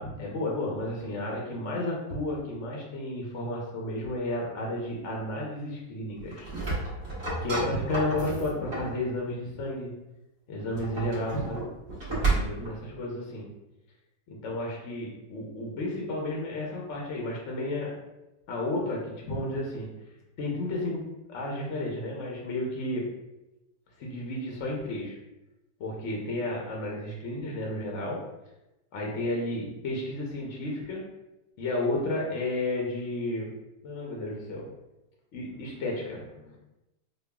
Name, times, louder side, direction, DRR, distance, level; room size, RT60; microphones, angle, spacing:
voice 1, 0.0-6.5 7.4-9.9 10.5-11.7 12.1-13.5 14.3-17.9 18.5-19.9 20.4-23.1 24.0-25.2 25.8-28.2 28.9-31.0 31.6-33.5 33.8-34.7 35.3-36.6, left 1 dB, 60° left, -2 dB, 0.8 m, -32 dB
sound 1, 6.2-9.0 10.6-12.8, right 3 dB, 40° right, 1.3 m, -31 dB
5.3 x 2.3 x 2.2 m, 0.96 s
omnidirectional pair, 1.9 m